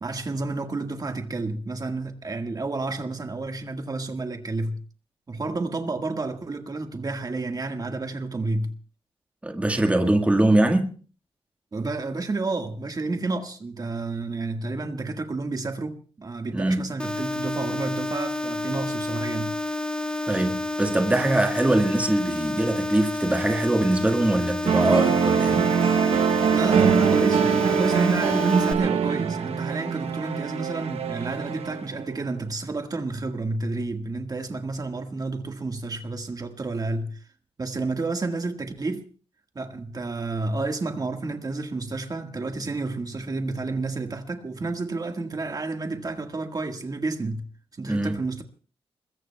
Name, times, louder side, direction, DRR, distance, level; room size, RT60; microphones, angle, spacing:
voice 1, 0.0-4.8 5.3-8.8 11.7-19.6 26.5-37.3 37.6-39.1 39.5-47.5 47.7-48.4, right 3 dB, 40° right, 1.7 m, -30 dB
voice 2, 9.4-10.9 16.5-16.9 20.3-25.7 47.9-48.2, right 1 dB, 15° right, 1.6 m, -22 dB
sound 1, 17.0-28.7, left 2 dB, 10° left, 2.2 m, -30 dB
sound 2, 24.7-32.2, right 7 dB, 80° right, 0.9 m, -23 dB
28.5 x 21.5 x 2.3 m
cardioid pair, 90°, 10 cm